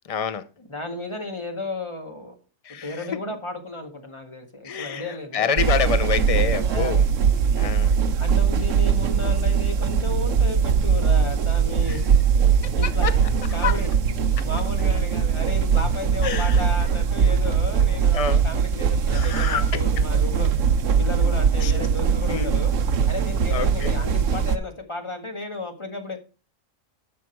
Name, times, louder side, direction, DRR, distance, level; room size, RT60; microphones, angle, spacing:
voice 1, 0.0-0.5 2.6-3.2 4.6-7.0 7.6-7.9 11.9-12.0 12.6-13.1 13.5-13.8 16.2-16.6 17.3-17.4 18.1-18.4 19.1-19.8 21.6-21.7 22.3-22.5 23.5-23.9, left 6 dB, 65° left, 12 dB, 0.3 m, -27 dB
voice 2, 0.7-2.3 2.8-5.5 6.6-7.0 8.2-12.0 12.5-13.1 13.5-13.9 14.4-20.5 21.0-22.7 23.1-26.2, left 2 dB, 20° left, 3 dB, 1.8 m, -33 dB
sound 1, 5.6-24.6, right 6 dB, 70° right, 1.1 m, -21 dB
10.5 x 6.2 x 4.5 m, 0.34 s
omnidirectional pair, 1.4 m